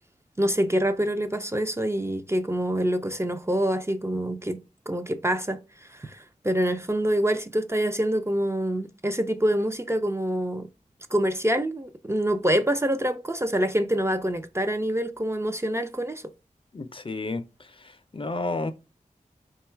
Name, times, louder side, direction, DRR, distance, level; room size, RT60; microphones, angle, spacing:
voice 1, 0.4-10.7 11.1-16.2, right 1 dB, 20° right, 0.4 m, -26 dB
voice 2, 16.7-17.4 18.1-18.7, left 2 dB, 40° left, 0.5 m, -30 dB
3.6 x 2.3 x 4.3 m
wide cardioid pair, 75°, 14 cm